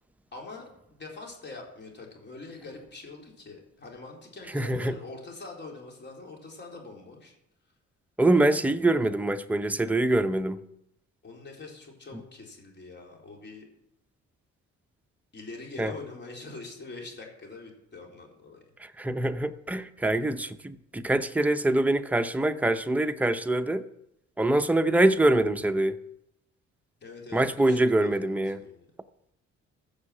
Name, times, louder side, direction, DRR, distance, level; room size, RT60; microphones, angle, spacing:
voice 1, 0.3-7.3 11.2-13.7 15.3-18.6 27.0-28.9, left 3 dB, 35° left, 4.0 m, -44 dB
voice 2, 4.5-5.0 8.2-10.6 15.8-15.9 18.8-23.8 24.4-26.0 27.3-28.6, right 1 dB, 5° right, 0.7 m, -24 dB
15.0 x 6.6 x 7.3 m
cardioid pair, 90°, 30 cm